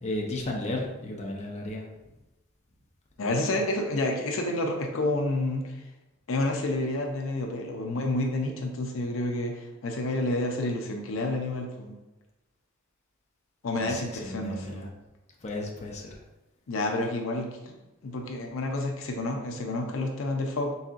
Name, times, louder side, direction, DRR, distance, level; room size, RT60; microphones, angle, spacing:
voice 1, 0.0-1.9 13.7-14.9 15.4-16.2, left 1 dB, 35° left, -1 dB, 0.6 m, -34 dB
voice 2, 3.2-5.7 6.3-12.0 13.6-14.9 16.7-17.8 18.0-20.8, left 2 dB, 85° left, 3 dB, 0.5 m, -29 dB
4.1 x 3.7 x 2.4 m, 0.99 s
head